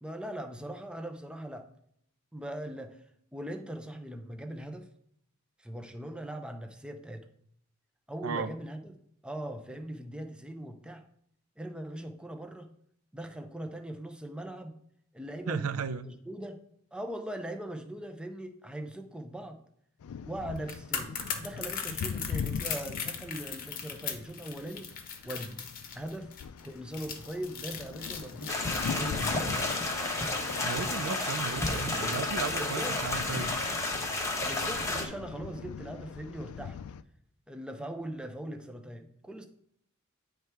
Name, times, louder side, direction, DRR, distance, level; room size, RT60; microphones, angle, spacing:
voice 1, 0.0-1.7 2.3-3.0 3.3-4.9 5.6-7.3 8.1-9.0 9.2-11.0 11.6-12.7 13.1-14.8 15.1-15.7 16.0-16.6 16.9-19.6 20.3-24.9 25.2-25.7 25.9-26.3 26.6-29.7 32.6-33.0 34.4-36.8 37.5-39.5, right 1 dB, 5° right, 0.5 m, -40 dB
voice 2, 15.5-16.1 30.6-33.5, right 5 dB, 75° right, 0.4 m, -35 dB
sound 1, 20.0-37.0, left 6 dB, 85° left, 0.4 m, -42 dB
sound 2, 20.6-33.7 34.0-34.2, left 7 dB, 40° left, 0.9 m, -40 dB
sound 3, 28.5-35.1, left 2 dB, 15° left, 1.0 m, -31 dB
9.3 x 3.3 x 4.5 m
head